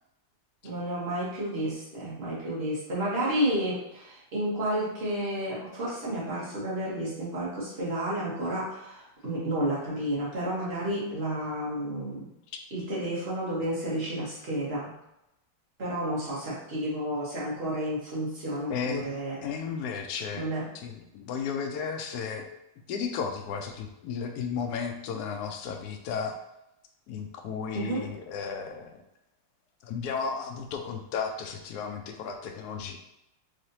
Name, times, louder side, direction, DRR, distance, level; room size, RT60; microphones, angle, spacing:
voice 1, 0.6-12.3 12.7-14.9 15.8-19.4 20.3-20.7 27.7-28.1, right 1 dB, 35° right, -7 dB, 1.3 m, -31 dB
voice 2, 18.7-19.1 19.4-20.5 20.7-22.5 22.9-26.3 27.1-29.0 29.8-33.0, left 6 dB, 75° left, 4 dB, 0.9 m, -34 dB
3.9 x 3.3 x 2.7 m, 0.87 s
omnidirectional pair, 2.2 m